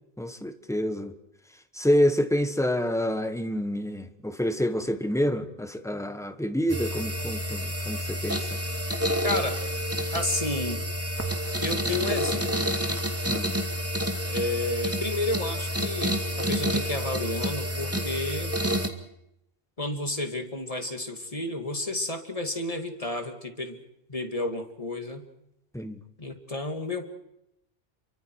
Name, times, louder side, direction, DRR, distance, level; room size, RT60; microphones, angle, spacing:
voice 1, 0.2-1.1 1.7-8.4 13.3-13.5 25.7-26.0, equal, 5° left, 8 dB, 1.4 m, -27 dB
sound 1, 6.7-18.9, equal, 15° right, 2.0 m, -29 dB
voice 2, 9.2-9.6 10.1-10.8 11.6-12.7 14.3-18.5 19.8-23.8 24.1-25.3 26.2-27.1, left 2 dB, 35° left, 5 dB, 2.3 m, -31 dB
29.5 x 23.5 x 4.7 m, 0.80 s
omnidirectional pair, 1.1 m